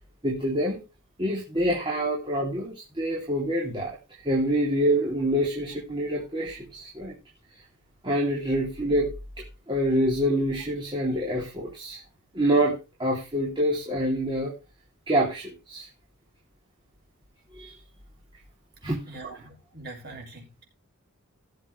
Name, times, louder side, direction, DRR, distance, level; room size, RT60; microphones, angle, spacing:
voice 1, 0.2-0.8 1.2-4.0 4.2-7.1 8.0-9.1 9.7-12.0 12.3-14.6 15.1-15.9 17.5-17.7 18.8-19.0, right 1 dB, 20° right, -4 dB, 3.1 m, -26 dB
voice 2, 19.1-20.6, right 3 dB, 45° right, 0 dB, 5.7 m, -42 dB
17.0 x 7.3 x 3.3 m, 0.27 s
head